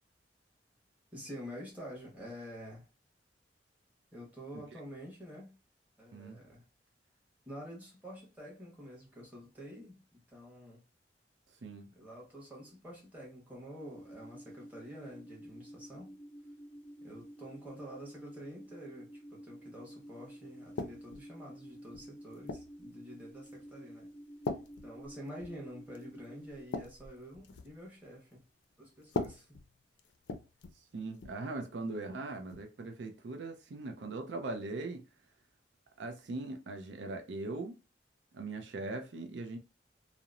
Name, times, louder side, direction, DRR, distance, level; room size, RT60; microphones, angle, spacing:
voice 1, 1.1-2.9 4.1-5.6 6.0-6.6 7.4-10.8 11.9-16.1 17.0-24.1 24.8-28.4 28.8-29.6 30.9-31.1, equal, 10° right, 1.2 m, -48 dB
sound 1, 13.8-26.6, equal, 10° left, 0.8 m, -51 dB
sound 2, 20.8-21.3 21.9-22.8 23.5-23.7 24.4-25.6 25.9-26.1 26.5-27.8 29.0-30.8 31.1-31.4 32.5-32.7, left 3 dB, 75° left, 0.4 m, -40 dB
voice 2, 30.9-35.1 36.0-37.8 38.3-39.6, right 2 dB, 90° right, 0.5 m, -40 dB
2.9 x 2.0 x 2.4 m
head